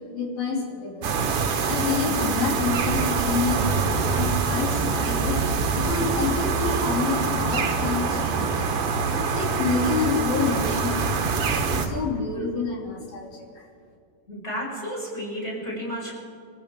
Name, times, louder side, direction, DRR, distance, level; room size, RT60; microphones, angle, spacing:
voice 1, 0.1-1.2 1.7-5.4 5.8-8.6 9.2-13.7, left 5 dB, 75° left, -2 dB, 4.7 m, -28 dB
sound 1, 1.0-11.9, right 5 dB, 55° right, 1.7 m, -25 dB
voice 2, 14.3-16.1, equal, 15° left, -5 dB, 5.9 m, -32 dB
25.5 x 15.0 x 3.7 m, 2.2 s
omnidirectional pair, 4.1 m